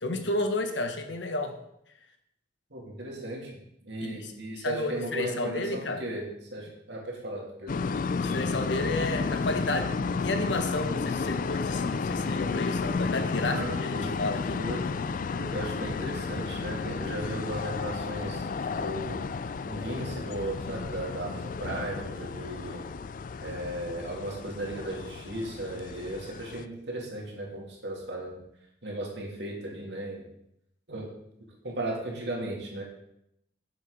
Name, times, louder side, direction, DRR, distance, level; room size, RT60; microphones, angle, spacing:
voice 1, 0.0-1.6 4.0-6.0 8.1-14.6, left 2 dB, 80° left, 6 dB, 1.2 m, -32 dB
voice 2, 2.7-7.8 13.4-14.1 14.6-15.0 15.3-18.4 18.7-19.3 19.7-22.8 23.4-28.4 28.8-30.2 30.9-31.1 31.6-32.8, right 1 dB, 65° right, -2 dB, 2.7 m, -36 dB
sound 1, 7.7-26.6, left 4 dB, 45° left, 0.4 m, -32 dB
8.8 x 7.6 x 5.0 m, 0.79 s
head